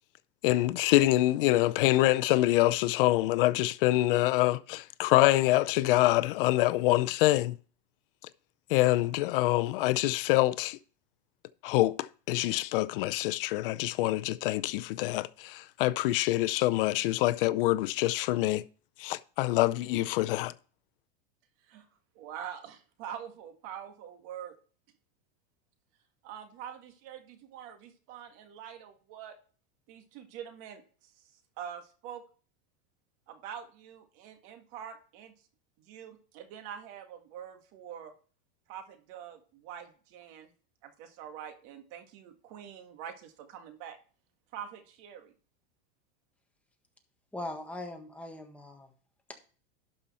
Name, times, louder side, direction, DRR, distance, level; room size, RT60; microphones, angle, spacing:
voice 1, 0.4-7.5 8.7-10.8 11.6-12.0 12.3-18.6 19.0-20.5, left 17 dB, 65° left, 0.6 m, -25 dB
voice 2, 22.2-24.6 26.2-29.4 29.9-30.8 31.6-32.2 33.3-35.3 35.8-38.1 38.7-40.5 40.8-44.0 44.5-45.3, right 9 dB, 50° right, 1.9 m, -45 dB
voice 3, 47.3-48.9 49.3-49.4, left 2 dB, 5° left, 1.5 m, -40 dB
12.0 x 5.6 x 4.2 m
supercardioid pair, 140°, 29 cm